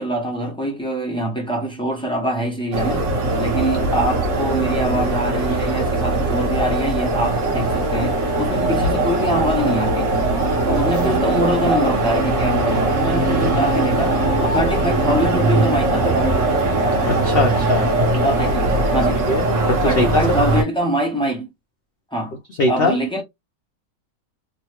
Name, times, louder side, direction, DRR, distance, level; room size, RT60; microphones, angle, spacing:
voice 1, 0.0-3.1 3.4-10.1 10.6-16.3 18.1-18.6 18.9-19.2 19.8-21.5 22.1-22.4 22.7-23.2, equal, 5° left, 0.5 m, -24 dB
sound 1, 2.7-20.6, right 2 dB, 60° right, 1.1 m, -20 dB
voice 2, 17.1-17.9 19.3-20.2 22.6-23.0, left 2 dB, 60° left, 0.6 m, -20 dB
3.1 x 2.2 x 2.9 m
omnidirectional pair, 1.6 m